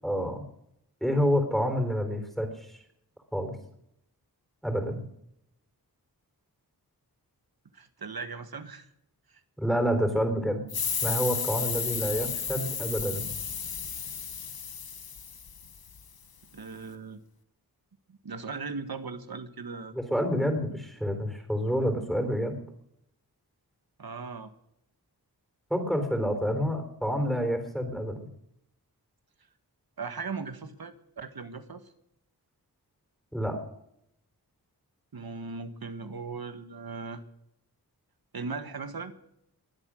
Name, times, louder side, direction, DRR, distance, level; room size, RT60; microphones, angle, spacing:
voice 1, 0.0-0.4 1.0-2.8 3.3-3.5 4.6-5.0 9.6-10.6 11.0-13.3 19.9-22.5 25.7-28.2 33.3-33.6, equal, ahead, 6 dB, 3.9 m, -28 dB
voice 2, 7.7-8.9 9.3-9.4 16.5-17.2 18.1-19.9 24.0-24.5 30.0-31.9 35.1-37.2 38.3-39.1, right 4 dB, 65° right, 10 dB, 1.6 m, -38 dB
sound 1, 10.7-16.0, left 6 dB, 65° left, 1.1 m, -33 dB
22.0 x 8.1 x 6.3 m, 0.76 s
wide cardioid pair, 60°, 39 cm